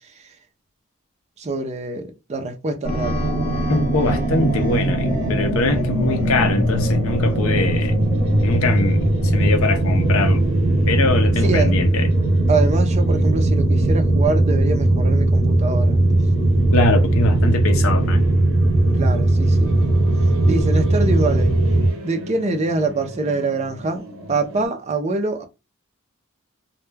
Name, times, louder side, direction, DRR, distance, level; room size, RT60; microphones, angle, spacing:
voice 1, 1.4-3.2 11.4-11.7 12.5-16.2 18.9-19.8 20.5-21.6 22.0-25.5, right 3 dB, 30° right, 0.4 m, -24 dB
sound 1, 2.8-21.9, right 1 dB, 30° left, 1.1 m, -18 dB
voice 2, 3.7-8.0 8.4-10.4 10.9-12.1 16.7-18.2, left 3 dB, 70° left, 0.5 m, -23 dB
sound 2, 5.9-24.7, equal, 60° right, 0.8 m, -35 dB
2.2 x 2.1 x 3.2 m
head